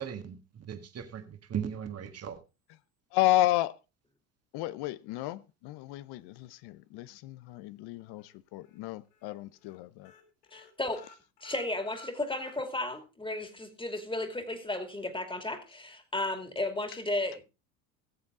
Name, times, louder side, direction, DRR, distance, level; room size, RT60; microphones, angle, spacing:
voice 1, 0.0-2.4, right 8 dB, 30° right, 1.7 m, -38 dB
voice 2, 3.1-3.8 4.5-10.1, left 15 dB, 55° left, 0.8 m, -31 dB
sound 1, 8.2-8.8 9.1-9.3 9.6-9.8 10.0-13.0 13.4-13.5 13.8-13.9, left 4 dB, 85° left, 2.1 m, -54 dB
voice 3, 10.5-11.0 11.4-17.5, left 2 dB, 10° left, 2.5 m, -34 dB
17.0 x 7.3 x 3.7 m
hypercardioid pair, 85°, 46 cm